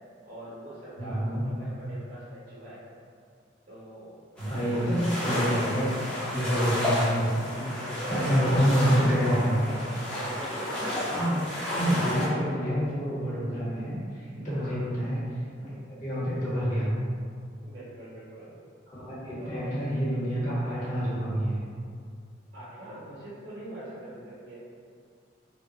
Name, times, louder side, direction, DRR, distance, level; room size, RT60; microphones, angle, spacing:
voice 1, 0.2-2.8 3.7-4.1 7.9-9.8 10.1-11.5 14.4-14.9 17.6-18.6 19.4-19.8 22.5-24.7, right 1 dB, 50° right, -10 dB, 0.7 m, -43 dB
voice 2, 1.0-1.4 4.4-9.6 11.1-11.4 11.8-15.2 15.6-17.0 18.9-21.6, equal, 40° left, -9 dB, 1.0 m, -27 dB
sound 1, 4.4-12.3, left 1 dB, 5° left, 0.5 m, -32 dB
3.1 x 2.2 x 2.7 m, 2.2 s
head